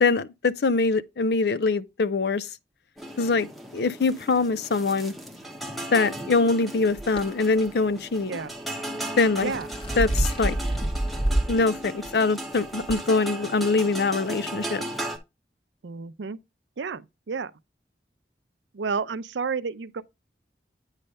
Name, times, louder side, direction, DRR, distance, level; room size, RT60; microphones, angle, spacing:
voice 1, 0.0-2.5 3.2-3.5 3.7-5.1 5.9-8.3 9.2-9.5 10.0-10.6 11.5-14.8, left 3 dB, 65° left, 0.5 m, -23 dB
sound 1, 3.0-15.2, right 1 dB, ahead, 0.9 m, -36 dB
sound 2, 7.0-7.2 9.2-11.6 12.0-12.1 12.9-13.0, right 1 dB, 30° left, 1.4 m, -26 dB
voice 2, 15.8-16.4 16.8-17.5 18.7-20.0, right 5 dB, 90° right, 0.5 m, -31 dB
9.0 x 3.3 x 5.4 m
head